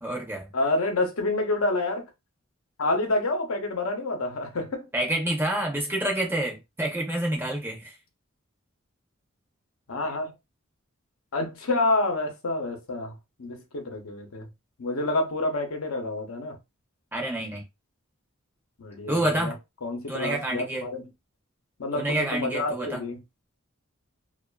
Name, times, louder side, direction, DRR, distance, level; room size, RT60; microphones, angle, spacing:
voice 1, 0.0-0.5 4.9-8.0 17.1-17.6 19.1-19.6 20.1-20.9 21.9-23.0, right 1 dB, 10° right, 0.5 m, -28 dB
voice 2, 0.5-2.1 2.8-4.9 9.9-10.3 11.3-14.5 14.8-16.6 18.8-19.5 19.8-21.0 21.8-23.2, left 2 dB, 80° left, 0.8 m, -28 dB
2.4 x 2.4 x 2.2 m
head